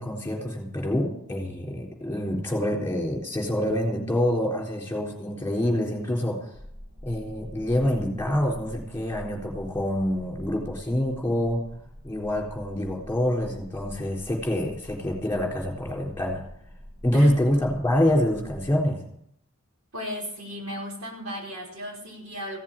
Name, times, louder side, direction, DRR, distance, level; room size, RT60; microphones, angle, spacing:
voice 1, 0.0-6.5 7.0-11.6 12.0-16.4 17.0-19.0, left 1 dB, 10° left, 0 dB, 3.8 m, -26 dB
sound 1, 6.5-18.8, equal, 60° right, 3.7 m, -45 dB
voice 2, 19.9-22.6, equal, 75° right, -1 dB, 5.0 m, -35 dB
16.0 x 7.4 x 8.8 m, 0.70 s
head